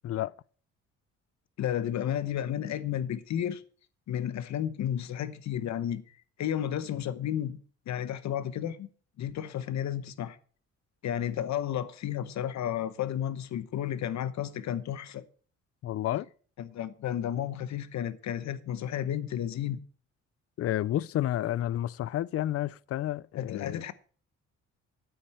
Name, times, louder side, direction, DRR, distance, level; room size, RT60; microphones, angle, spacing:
voice 1, 1.6-3.6 4.1-6.0 6.4-7.6 7.9-8.9 9.2-10.4 11.0-15.2 16.6-19.8 23.4-23.9, left 10 dB, 65° left, 0.9 m, -32 dB
voice 2, 15.8-16.3 20.6-23.8, left 13 dB, 50° left, 0.4 m, -30 dB
9.2 x 8.5 x 4.3 m
cardioid pair, 90°, 30 cm